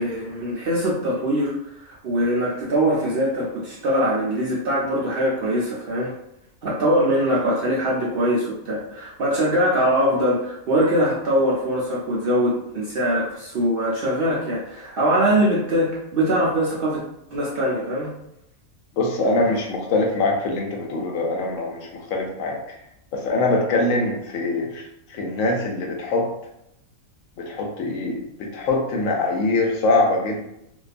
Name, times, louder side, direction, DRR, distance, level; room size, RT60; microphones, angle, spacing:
voice 1, 0.0-1.5 1.8-6.1 6.6-17.0 17.3-18.1 19.4-19.5, equal, 70° right, -5 dB, 0.5 m, -22 dB
voice 2, 19.0-22.8 23.1-26.3 27.4-30.4, left 2 dB, 70° left, 0 dB, 0.9 m, -23 dB
2.6 x 2.3 x 2.4 m, 0.81 s
omnidirectional pair, 1.5 m